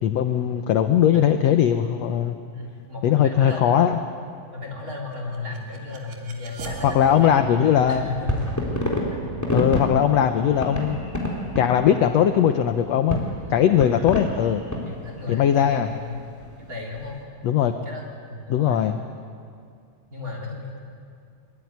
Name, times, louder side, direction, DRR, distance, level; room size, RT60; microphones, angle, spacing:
voice 1, 0.0-2.4 3.0-4.0 6.8-8.1 9.5-11.1 11.6-14.6 15.3-15.9 17.4-17.7 18.5-19.0, left 9 dB, 75° left, 8 dB, 1.6 m, -20 dB
voice 2, 1.0-1.5 2.5-3.9 4.5-7.4 7.9-8.6 13.9-14.3 14.8-16.2 16.7-17.2 17.6-18.8 20.1-20.8, left 3 dB, 25° right, -1 dB, 4.2 m, -35 dB
sound 1, 5.1-14.1, right 5 dB, 70° right, 3.9 m, -41 dB
sound 2, 7.1-17.2, equal, 5° left, 3.5 m, -30 dB
23.5 x 23.0 x 9.5 m, 2.3 s
omnidirectional pair, 4.0 m